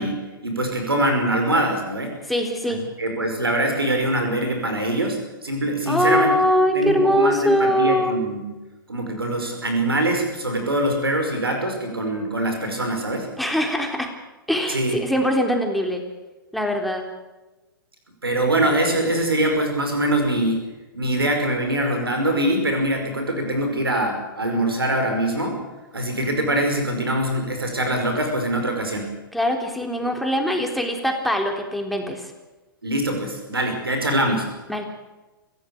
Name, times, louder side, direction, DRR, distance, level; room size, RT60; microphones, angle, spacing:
voice 1, 0.0-2.1 3.0-6.3 6.7-8.6 8.9-13.3 14.7-15.0 18.2-20.6 20.9-25.6 25.9-29.1 32.8-34.5, right 1 dB, 85° right, 4 dB, 5.3 m, -23 dB
voice 2, 2.3-2.8 5.9-8.2 13.4-14.1 14.5-16.0 16.5-17.0 29.3-32.3 34.7-34.8, equal, ahead, 2 dB, 3.6 m, -22 dB
25.5 x 16.5 x 6.7 m, 1.1 s
figure-of-eight pair, 115°, 12 cm